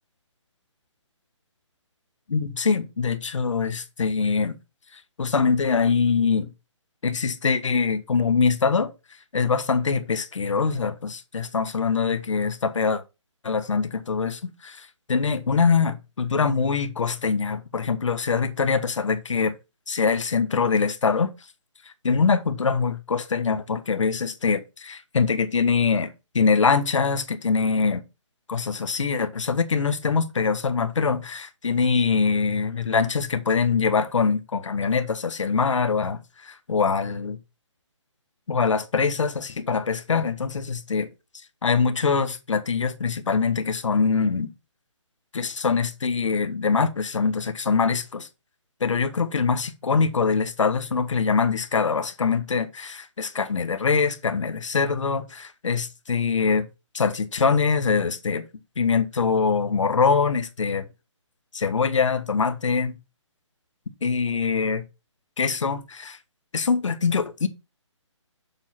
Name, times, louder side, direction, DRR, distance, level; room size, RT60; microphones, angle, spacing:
voice 1, 2.3-4.6 4.9-6.5 7.0-8.9 9.3-13.0 13.4-19.5 19.9-21.3 21.8-28.0 28.5-37.4 38.5-41.1 41.6-44.5 45.3-48.3 48.8-56.6 56.9-58.4 58.8-60.9 61.5-63.0 64.0-64.8 65.4-66.2 66.5-67.5, left 5 dB, 75° left, 1.4 m, -23 dB
7.2 x 3.8 x 5.9 m
hypercardioid pair, 160°, 16 cm